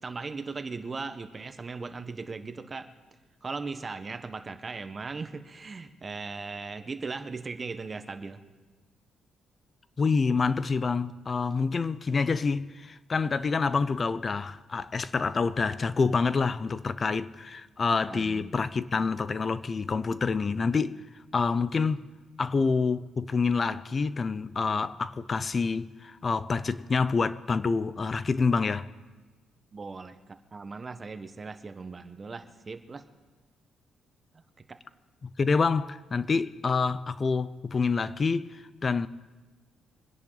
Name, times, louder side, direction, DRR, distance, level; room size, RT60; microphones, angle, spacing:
voice 1, 0.0-2.9 3.4-8.4 18.1-18.6 29.7-30.2 30.5-33.0 34.7-34.8, right 4 dB, 30° right, 1.1 m, -38 dB
voice 2, 10.0-21.0 21.3-22.0 22.4-28.9 35.2-39.1, left 4 dB, 35° left, 0.5 m, -27 dB
26.0 x 10.5 x 4.0 m
cardioid pair, 90°, 0 cm